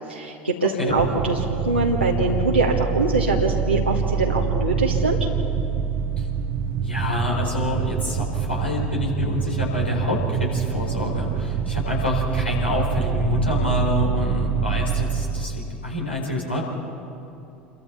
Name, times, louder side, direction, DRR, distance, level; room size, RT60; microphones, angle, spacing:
voice 1, 0.1-5.2, right 2 dB, 90° right, -3 dB, 1.5 m, -23 dB
sound 1, 0.9-16.0, right 6 dB, 55° right, 1.1 m, -25 dB
voice 2, 6.8-16.6, left 2 dB, 85° left, -2 dB, 4.4 m, -27 dB
28.5 x 22.5 x 4.2 m, 2.8 s
figure-of-eight pair, 75°, 6 cm